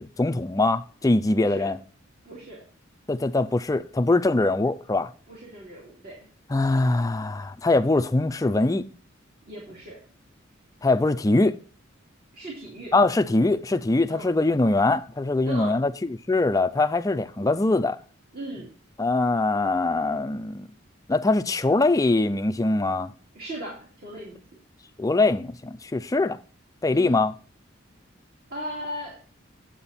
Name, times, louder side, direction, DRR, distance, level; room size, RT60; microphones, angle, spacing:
voice 1, 0.0-1.8 3.1-5.1 6.5-8.9 10.8-11.6 12.9-18.0 19.0-20.7 21.1-23.1 25.0-26.4 26.8-27.3, left 2 dB, 15° left, 0.4 m, -22 dB
voice 2, 1.3-1.7 2.2-2.6 5.3-6.2 9.4-10.0 12.3-12.9 14.1-14.3 15.4-15.8 18.3-18.7 23.3-24.4 26.9-27.1 28.5-29.1, right 1 dB, 45° right, 2.7 m, -37 dB
8.7 x 7.9 x 4.2 m
head